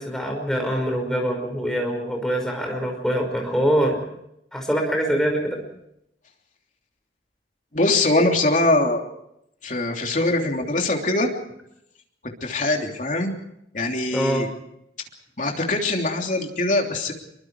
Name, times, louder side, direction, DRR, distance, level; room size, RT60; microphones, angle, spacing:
voice 1, 0.0-4.0 4.5-5.6 14.1-14.5, equal, 5° left, 2 dB, 5.5 m, -24 dB
voice 2, 7.7-9.0 9.6-11.3 12.2-13.3 13.7-14.5 15.4-17.1, left 2 dB, 45° left, 2 dB, 3.2 m, -22 dB
26.0 x 23.5 x 4.8 m, 0.77 s
head